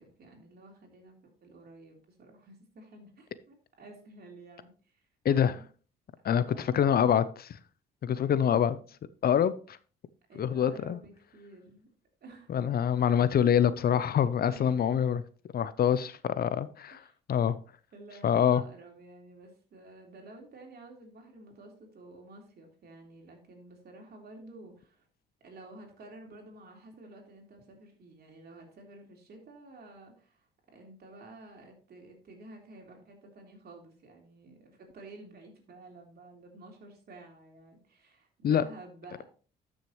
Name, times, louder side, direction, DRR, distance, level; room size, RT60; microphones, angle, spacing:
voice 1, 0.0-5.1 5.4-5.6 6.3-7.0 10.3-11.9 12.2-12.7 14.4-14.9 16.9-17.1 17.9-25.0 25.4-39.2, right 2 dB, 55° right, 3.4 m, -51 dB
voice 2, 5.2-5.6 6.2-7.6 8.0-8.8 9.2-9.8 10.4-11.0 12.5-15.2 15.5-17.0 17.3-17.6 18.2-18.6 38.4-38.6, left 8 dB, 50° left, 0.6 m, -25 dB
12.5 x 6.4 x 3.1 m
supercardioid pair, 75°, 20 cm